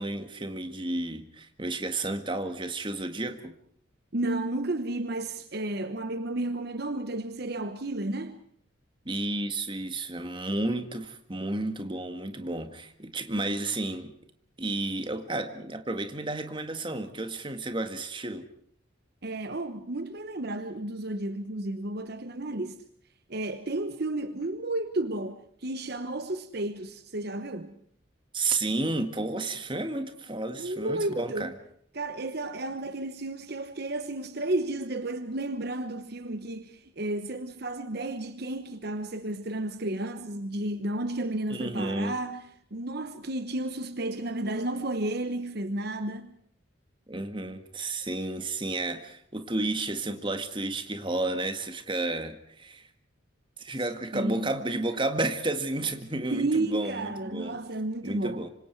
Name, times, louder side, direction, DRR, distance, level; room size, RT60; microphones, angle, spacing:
voice 1, 0.0-3.5 9.1-14.1 14.6-18.5 28.3-31.5 41.5-42.1 47.1-52.9 53.6-57.6 58.0-58.5, right 2 dB, 25° right, 1.8 m, -32 dB
voice 2, 4.1-8.4 19.2-22.8 23.3-27.8 30.5-31.5 31.9-46.3 54.1-54.5 56.3-58.4, right 2 dB, 50° right, 1.0 m, -32 dB
26.0 x 26.0 x 4.6 m
head